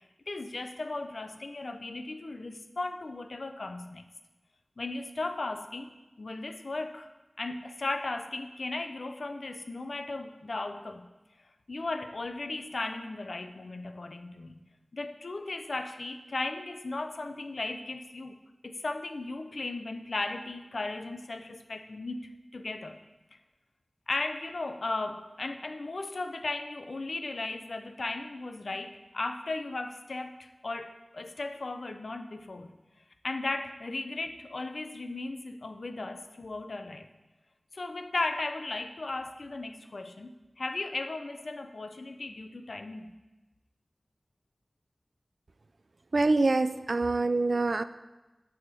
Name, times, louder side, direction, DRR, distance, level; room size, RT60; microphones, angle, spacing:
voice 1, 0.3-4.0 4.8-5.9 6.2-7.1 7.4-11.1 11.7-14.6 14.9-18.3 18.6-23.0 24.1-32.8 33.2-37.1 37.7-43.1, left 2 dB, 80° left, 8 dB, 0.5 m, -36 dB
voice 2, 46.1-47.8, right 3 dB, 75° right, 12 dB, 0.3 m, -25 dB
9.5 x 3.6 x 6.7 m, 1.1 s
wide cardioid pair, 60°, 0 cm